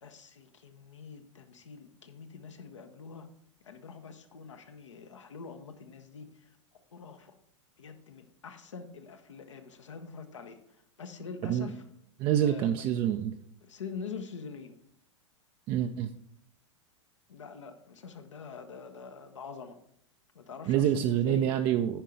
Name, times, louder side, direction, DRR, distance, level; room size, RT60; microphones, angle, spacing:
voice 1, 0.0-3.3 3.6-6.6 6.9-7.4 7.8-10.6 11.0-11.8 12.4-12.8 13.6-14.8 17.3-19.8 20.3-21.5, left 5 dB, 70° left, 6 dB, 0.9 m, -45 dB
voice 2, 11.4-11.7 12.2-13.3 15.7-16.1 20.7-22.0, right 10 dB, 30° right, 7 dB, 0.5 m, -27 dB
10.0 x 4.6 x 5.2 m, 0.71 s
figure-of-eight pair, 95°, 16 cm